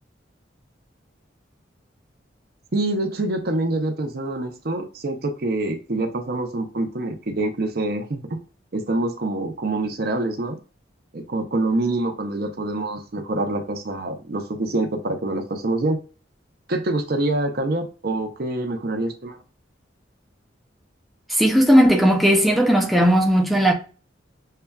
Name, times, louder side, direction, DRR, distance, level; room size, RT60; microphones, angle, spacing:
voice 1, 2.7-8.2 8.7-10.6 11.1-16.0 16.7-19.4, right 2 dB, 55° right, 0.6 m, -25 dB
voice 2, 21.3-23.7, equal, ahead, 0.4 m, -16 dB
6.5 x 2.3 x 2.2 m
head